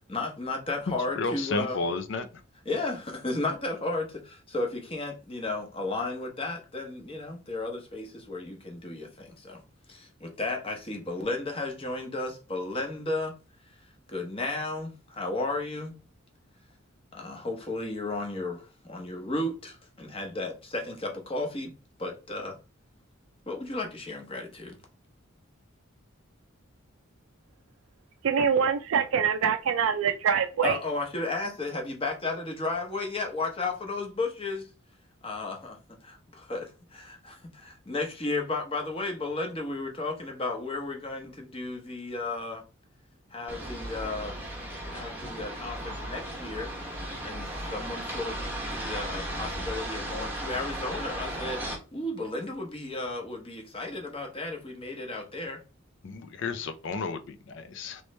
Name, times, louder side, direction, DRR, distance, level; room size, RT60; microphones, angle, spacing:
voice 1, 0.1-1.8 2.6-9.6 9.9-13.3 14.1-15.9 17.1-21.7 22.0-22.6 23.5-24.8 30.6-34.7 35.2-35.8 36.0-42.6 43.3-44.4 44.9-46.7 47.2-51.6 51.9-55.6, left 2 dB, 25° left, 0.8 m, -34 dB
voice 2, 1.2-2.3 56.0-58.0, left 4 dB, 60° left, 0.4 m, -32 dB
voice 3, 28.2-30.8, right 7 dB, 75° right, 0.3 m, -24 dB
sound 1, 43.5-51.8, right 1 dB, 10° right, 0.8 m, -36 dB
3.1 x 3.0 x 3.1 m
head